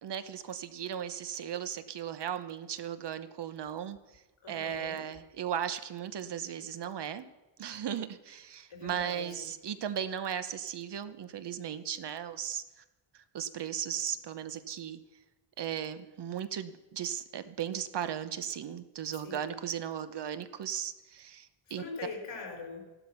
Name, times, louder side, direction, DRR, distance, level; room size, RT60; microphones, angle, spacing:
voice 1, 0.0-4.0 4.5-7.2 7.6-12.6 13.3-15.0 15.6-21.8, right 9 dB, 55° right, 12 dB, 0.9 m, -36 dB
voice 2, 4.4-5.1 8.7-9.5 19.0-19.6 21.7-22.9, left 4 dB, 60° left, 1 dB, 4.6 m, -43 dB
14.5 x 12.0 x 5.8 m, 1.1 s
wide cardioid pair, 155°, 48 cm